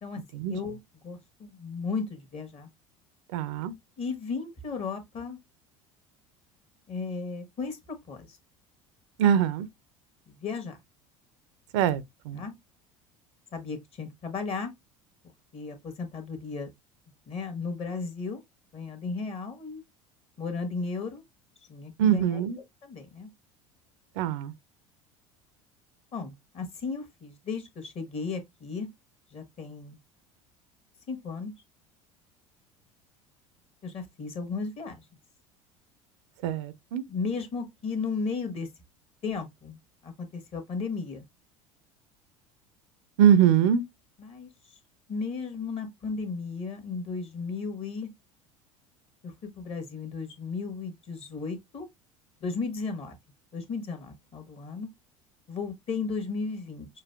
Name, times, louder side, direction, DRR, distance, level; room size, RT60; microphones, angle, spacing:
voice 1, 0.5-2.7 4.0-5.4 6.9-8.3 10.3-10.8 12.3-12.5 13.5-14.7 15.5-16.7 17.3-18.4 18.7-19.8 20.4-21.2 21.7-22.4 22.8-23.3 26.1-28.9 29.3-30.0 31.1-31.5 33.8-35.0 37.1-38.7 39.2-39.8 40.0-41.3 44.2-44.5 45.1-48.1 49.2-51.9 52.4-53.2 53.5-54.9 55.5-56.9, left 4 dB, 35° left, 1.3 m, -35 dB
voice 2, 3.3-3.7 9.2-9.7 11.7-12.4 22.0-22.6 24.2-24.5 36.4-37.0 43.2-43.8, right 9 dB, 55° right, 0.5 m, -23 dB
6.1 x 2.5 x 2.3 m
figure-of-eight pair, 70°, 17 cm